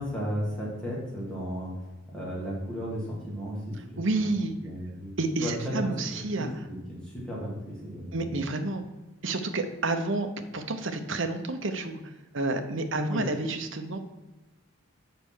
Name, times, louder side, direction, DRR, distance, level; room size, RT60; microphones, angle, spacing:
voice 1, 0.0-1.7 2.1-3.6 4.6-5.1 5.4-5.9 6.4-6.5 6.9-7.5 7.8-8.2 12.9-13.2, equal, 5° left, -6 dB, 2.6 m, -34 dB
voice 2, 3.7-4.5 5.2-6.6 8.1-8.8 9.2-14.0, right 2 dB, 60° right, 7 dB, 0.8 m, -30 dB
6.7 x 5.5 x 6.2 m, 1.1 s
head